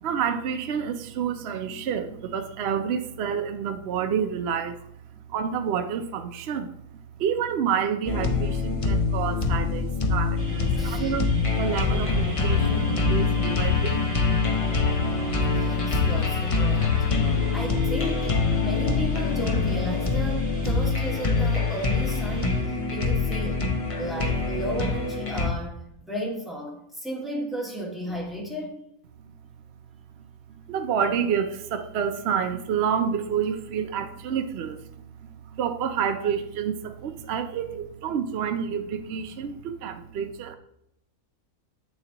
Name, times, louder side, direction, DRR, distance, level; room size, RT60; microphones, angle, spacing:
voice 1, 0.0-4.8 5.3-6.8 7.2-14.0 14.7-14.8 15.7-15.8 30.7-34.8 35.4-40.6, right 7 dB, 60° right, 8 dB, 0.7 m, -29 dB
sound 1, 8.1-25.5, left 4 dB, 35° left, 0.5 m, -25 dB
sound 2, 10.4-22.6, right 1 dB, 20° right, 2.7 m, -36 dB
voice 2, 10.6-11.1 14.5-17.0 17.5-23.7 24.0-28.8, right 1 dB, ahead, -2 dB, 1.9 m, -34 dB
8.8 x 7.1 x 2.9 m, 0.78 s
omnidirectional pair, 1.6 m